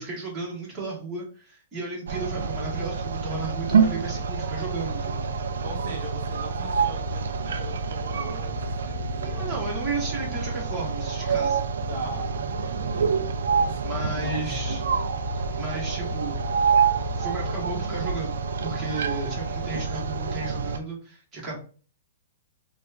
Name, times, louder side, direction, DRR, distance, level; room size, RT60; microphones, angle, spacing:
voice 1, 0.0-5.3 9.2-11.6 13.8-14.8 15.6-16.4 17.2-21.6, right 3 dB, 15° right, 1.3 m, -34 dB
sound 1, 2.1-20.8, right 5 dB, 85° right, 0.4 m, -27 dB
voice 2, 5.6-9.6 11.9-12.4 12.8-13.4 13.7-13.8 14.2-14.7, right 2 dB, 50° right, 0.8 m, -40 dB
sound 2, 6.7-17.8, left 9 dB, 35° left, 0.3 m, -40 dB
sound 3, 14.0-19.9, left 2 dB, 10° left, 0.9 m, -49 dB
4.0 x 2.3 x 2.4 m
hypercardioid pair, 160°, 0 cm